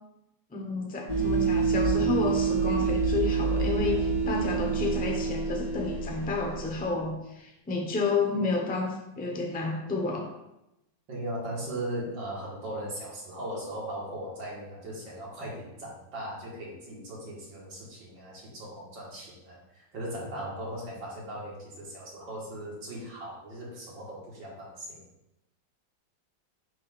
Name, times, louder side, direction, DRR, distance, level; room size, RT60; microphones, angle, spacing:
voice 1, 0.5-10.3, left 4 dB, 10° left, 0 dB, 0.6 m, -31 dB
sound 1, 1.1-6.9, right 4 dB, 50° right, 2.5 m, -27 dB
voice 2, 11.1-25.0, right 1 dB, 75° right, -4 dB, 2.6 m, -38 dB
8.3 x 6.2 x 2.5 m, 0.90 s
omnidirectional pair, 2.1 m